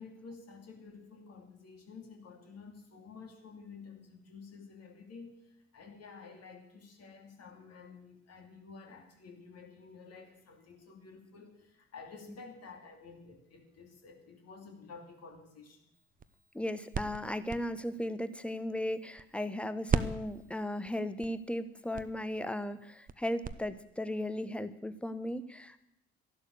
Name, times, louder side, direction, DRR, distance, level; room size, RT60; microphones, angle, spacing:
voice 1, 0.0-15.9, left 4 dB, 50° left, 3 dB, 3.0 m, -51 dB
sound 1, 15.9-19.6 19.9-23.5, right 5 dB, 25° right, 0.9 m, -38 dB
voice 2, 16.5-25.9, left 1 dB, 5° left, 13 dB, 1.1 m, -36 dB
14.0 x 11.5 x 6.7 m, 0.79 s
figure-of-eight pair, 50°, 33 cm